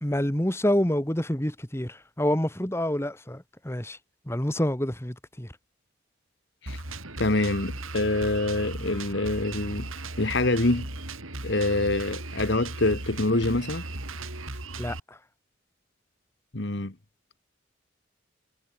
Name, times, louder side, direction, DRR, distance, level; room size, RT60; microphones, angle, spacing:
voice 1, 0.0-4.0 4.3-5.5 14.8-15.2, equal, 10° left, 1.6 m, -27 dB
Drum kit, 6.7-15.0, right 2 dB, 85° right, 5.6 m, -37 dB
voice 2, 7.2-9.9 10.2-10.9 11.4-13.8 16.5-16.9, left 2 dB, 55° left, 1.4 m, -25 dB
head